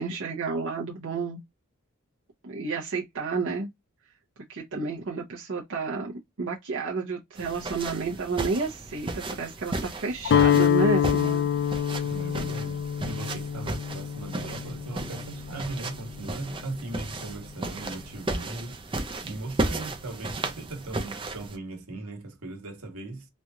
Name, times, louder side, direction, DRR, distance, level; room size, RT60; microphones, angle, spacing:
voice 1, 0.0-1.4 2.4-3.7 4.5-6.1 6.4-11.5, right 4 dB, 60° right, 0.8 m, -30 dB
sound 1, 7.4-21.6, right 2 dB, 25° right, 0.5 m, -35 dB
Guitar, 10.3-16.3, left 9 dB, 50° left, 0.4 m, -26 dB
voice 2, 12.0-18.8 19.2-23.3, right 2 dB, 80° right, 1.3 m, -38 dB
3.1 x 2.4 x 2.7 m
head